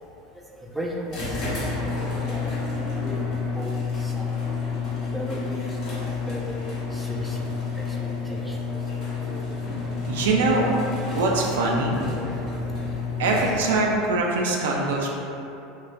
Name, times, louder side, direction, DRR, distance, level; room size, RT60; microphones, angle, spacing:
voice 1, 0.6-1.9 2.3-2.5 3.0-3.2 3.5-4.3 5.1-6.6 6.9-9.6 9.8-10.0 11.8-12.9 13.8-14.1, equal, 5° right, -2 dB, 0.3 m, -37 dB
sound 1, 1.1-13.9, left 4 dB, 55° left, 0.8 m, -29 dB
voice 2, 10.1-10.7 11.2-12.0 13.2-15.1, right 3 dB, 80° right, -1 dB, 0.3 m, -23 dB
3.0 x 2.1 x 2.5 m, 2.8 s
hypercardioid pair, 95°, 0 cm